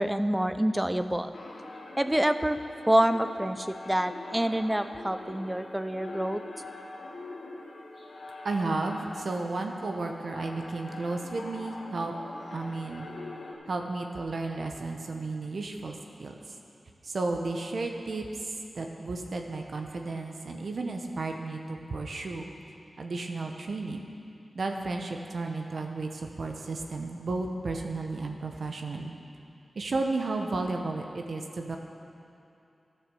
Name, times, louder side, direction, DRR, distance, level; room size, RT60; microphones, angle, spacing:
voice 1, 0.0-1.4 2.0-2.6 2.9-6.4, right 1 dB, 10° right, 10 dB, 0.4 m, -27 dB
sound 1, 1.3-13.5, left 2 dB, 80° left, 1.7 m, -44 dB
voice 2, 8.4-12.1 12.5-13.1 13.7-16.3 17.0-22.5 23.0-24.0 24.5-29.1 29.8-31.8, right 3 dB, 70° right, 3 dB, 0.9 m, -33 dB
11.5 x 6.7 x 6.8 m, 2.7 s
cardioid pair, 65°, 0 cm